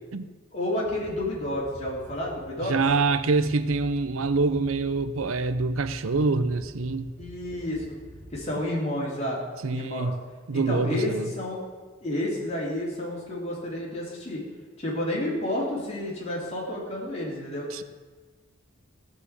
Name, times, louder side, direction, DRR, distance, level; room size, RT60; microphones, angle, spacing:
voice 1, 0.5-2.8 7.2-8.0 8.3-9.4 9.7-10.1 10.5-11.6 12.0-14.4 14.8-17.7, left 1 dB, 30° left, -4 dB, 3.4 m, -30 dB
sound 1, 0.8-8.4, right 1 dB, 35° right, 1.8 m, -47 dB
voice 2, 2.6-7.1 9.6-10.2 10.5-11.3 17.7-17.8, right 3 dB, 80° right, 12 dB, 0.6 m, -25 dB
15.0 x 5.1 x 8.3 m, 1.3 s
head